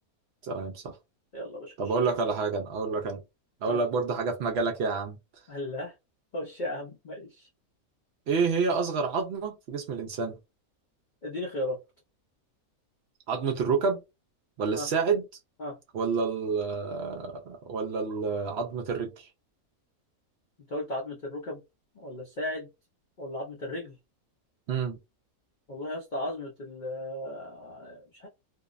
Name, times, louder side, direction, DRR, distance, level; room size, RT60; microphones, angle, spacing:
voice 1, 0.4-0.9 1.8-3.2 3.6-5.2 8.3-10.4 13.3-14.0 14.6-15.2 15.9-19.3 24.7-25.0, right 4 dB, 70° right, 0.6 m, -28 dB
voice 2, 1.3-2.3 3.7-3.8 5.5-5.9 6.3-7.5 11.2-11.8 14.7-14.9 15.6-15.8 20.7-21.6 22.0-22.7 23.2-24.0 25.7-28.3, left 1 dB, 75° left, 0.4 m, -36 dB
2.6 x 2.0 x 2.3 m
omnidirectional pair, 1.5 m